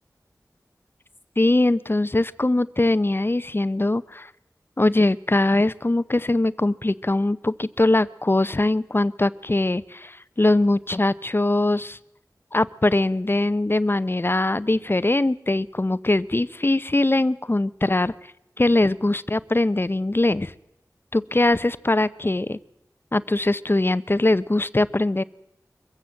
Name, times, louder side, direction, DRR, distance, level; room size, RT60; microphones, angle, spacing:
voice 1, 1.4-4.3 4.8-12.0 12.5-18.1 18.6-20.5 21.1-22.6 23.1-25.2, left 2 dB, 35° left, 16 dB, 0.7 m, -21 dB
24.0 x 15.0 x 7.6 m, 0.84 s
wide cardioid pair, 55°, 7 cm